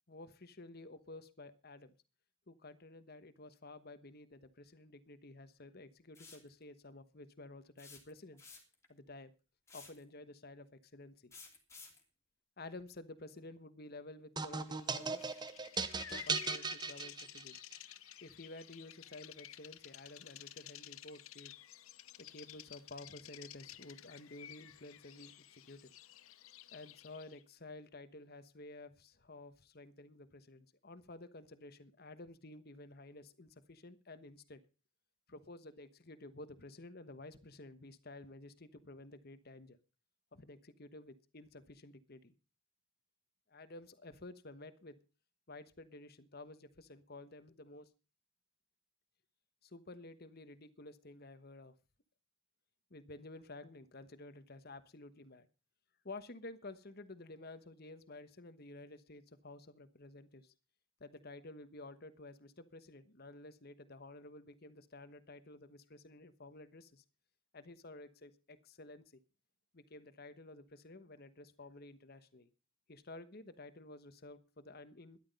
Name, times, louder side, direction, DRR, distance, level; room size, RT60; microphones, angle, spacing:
voice 1, 0.1-1.9 2.5-8.4 8.9-9.3 9.7-10.7 10.9-11.3 12.6-15.5 16.1-17.6 18.2-21.5 22.2-25.9 26.7-34.6 35.3-39.8 40.3-42.3 43.5-45.0 45.5-47.9 49.6-51.7 52.9-55.5 56.0-60.5 61.0-67.0 67.5-69.0 69.7-72.5 72.9-75.2, left 2 dB, 45° left, 12 dB, 1.2 m, -52 dB
sound 1, 6.1-6.5 7.8-8.9 9.7-10.0 11.3-12.0, left 4 dB, 15° left, 2.8 m, -54 dB
sound 2, 14.4-17.7, right 4 dB, 20° right, 0.9 m, -38 dB
Bird vocalization bird call bird song, 14.7-27.4, left 12 dB, 75° left, 0.8 m, -53 dB
13.0 x 11.5 x 5.3 m, 0.33 s
head